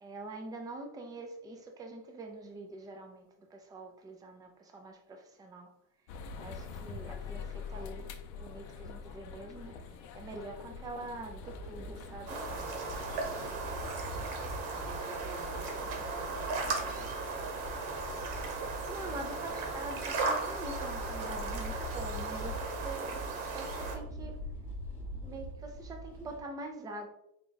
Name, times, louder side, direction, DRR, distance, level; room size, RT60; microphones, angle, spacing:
voice 1, 0.0-5.7 6.3-8.0 8.4-12.4 18.8-24.4 25.2-27.1, right 2 dB, 10° right, 3 dB, 0.3 m, -44 dB
sound 1, 6.1-13.6, left 5 dB, 50° left, 0.5 m, -45 dB
sound 2, 11.4-26.4, equal, 5° left, 0.8 m, -43 dB
sound 3, 12.3-24.0, right 3 dB, 75° right, 1.1 m, -37 dB
voice 2, 14.7-17.2, right 4 dB, 50° right, 3 dB, 0.8 m, -49 dB
4.0 x 2.3 x 3.8 m, 0.79 s
supercardioid pair, 130°, 41 cm